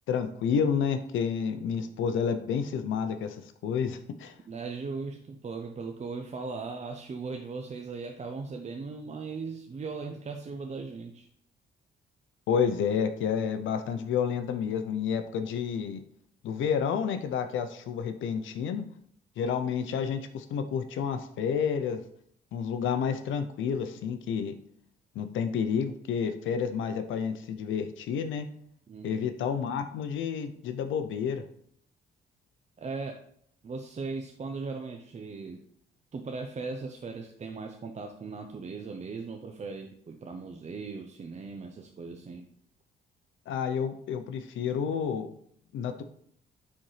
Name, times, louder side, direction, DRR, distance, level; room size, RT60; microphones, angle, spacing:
voice 1, 0.1-3.4 3.6-4.3 12.5-16.0 16.4-18.8 19.4-22.0 22.5-24.5 25.2-28.5 29.0-31.4 43.5-45.3 45.7-46.0, left 7 dB, 80° left, 8 dB, 0.7 m, -30 dB
voice 2, 4.5-11.3 28.9-29.2 32.8-33.2 33.6-35.6 36.1-42.5, right 4 dB, 35° right, 3 dB, 0.7 m, -38 dB
9.9 x 4.1 x 3.3 m, 0.65 s
cardioid pair, 90°, 20 cm